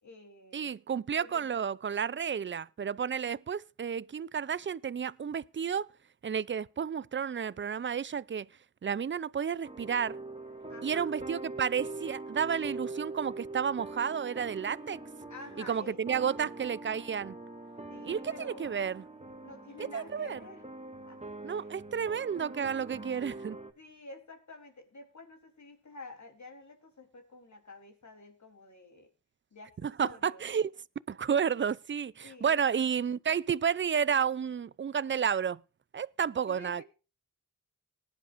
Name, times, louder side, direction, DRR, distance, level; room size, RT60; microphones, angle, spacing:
voice 1, 0.0-0.7 1.2-1.7 10.7-11.1 15.3-16.5 17.9-18.7 19.4-20.6 21.1-21.7 23.8-29.1 29.5-30.5 32.2-32.6 36.5-36.8, left 2 dB, 65° left, 3.5 m, -50 dB
voice 2, 0.5-5.9 6.2-8.5 8.8-10.2 10.8-15.0 15.7-17.3 18.1-19.0 19.9-20.4 21.4-23.6 29.8-30.7 31.1-35.6 35.9-36.8, right 7 dB, 40° right, 0.5 m, -31 dB
sound 1, 9.6-23.7, right 2 dB, 20° right, 1.7 m, -43 dB
19.0 x 10.5 x 2.6 m
cardioid pair, 50°, 31 cm